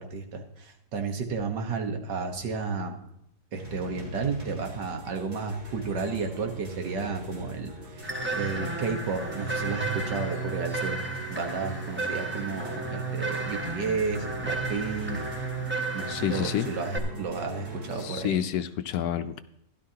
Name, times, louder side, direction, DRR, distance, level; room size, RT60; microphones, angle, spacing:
voice 1, 0.0-3.0 3.5-8.1 8.4-11.0 11.3-15.2 15.9-18.4, right 4 dB, 85° right, 4 dB, 1.9 m, -32 dB
sound 1, 3.5-18.2, right 1 dB, 65° right, 3.2 m, -42 dB
sound 2, 8.0-17.0, right 3 dB, 10° right, 1.0 m, -33 dB
voice 2, 16.1-16.7 18.0-19.4, left 10 dB, 70° left, 11 dB, 1.0 m, -29 dB
15.5 x 12.0 x 2.8 m, 0.78 s
omnidirectional pair, 1.8 m